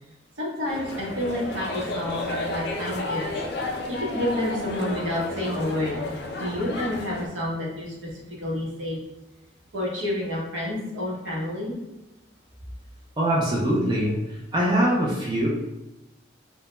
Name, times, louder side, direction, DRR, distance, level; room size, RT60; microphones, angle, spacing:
voice 1, 0.4-3.3 3.9-9.0 9.7-11.7, left 1 dB, 80° right, -4 dB, 0.8 m, -29 dB
sound 1, 0.7-7.3, left 2 dB, 55° left, 0.4 m, -32 dB
voice 2, 13.2-15.5, right 1 dB, 20° right, -5 dB, 0.3 m, -23 dB
2.1 x 2.1 x 2.9 m, 0.96 s
head